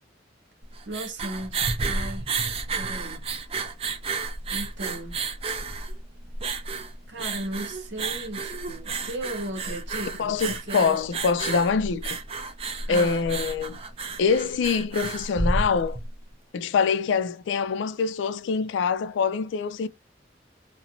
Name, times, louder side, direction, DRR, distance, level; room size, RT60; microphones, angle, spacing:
sound 1, 0.6-16.1, right 3 dB, 30° right, 0.4 m, -31 dB
voice 1, 0.9-2.3 2.7-3.3 4.5-5.2 7.1-11.0 12.9-13.2, right 1 dB, 70° right, 0.7 m, -36 dB
voice 2, 10.2-12.2 12.9-13.8 14.2-16.0 16.5-19.9, left 5 dB, 75° left, 0.3 m, -24 dB
2.5 x 2.0 x 2.8 m
head